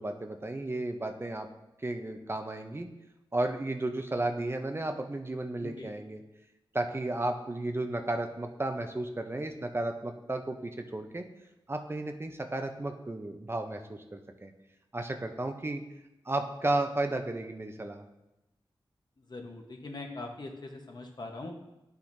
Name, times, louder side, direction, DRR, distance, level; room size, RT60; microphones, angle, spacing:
voice 1, 0.0-1.5 1.8-2.9 3.3-6.2 6.7-11.2 11.7-14.5 14.9-15.8 16.2-18.0, right 2 dB, 25° right, 5 dB, 0.6 m, -33 dB
voice 2, 19.3-21.5, left 2 dB, 50° left, 2 dB, 1.1 m, -41 dB
10.0 x 5.8 x 2.7 m, 0.93 s
wide cardioid pair, 75°, 9 cm